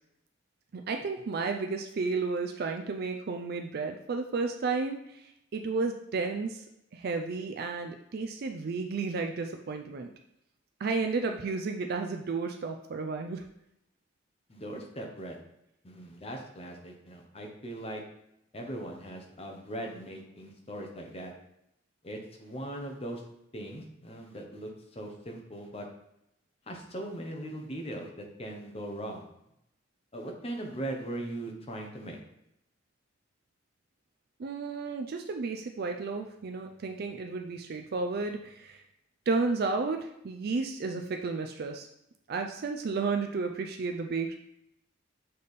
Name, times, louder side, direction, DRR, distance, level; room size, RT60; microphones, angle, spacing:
voice 1, 0.7-6.6 6.9-10.1 10.8-13.5 34.4-38.8 39.3-41.9 42.3-44.4, right 4 dB, 55° right, 4 dB, 0.4 m, -32 dB
voice 2, 14.5-15.4 15.8-18.0 18.5-21.3 22.0-23.2 23.5-25.9 26.7-29.3 30.1-32.2, right 1 dB, 30° left, 1 dB, 1.0 m, -39 dB
6.7 x 3.4 x 4.2 m, 0.80 s
head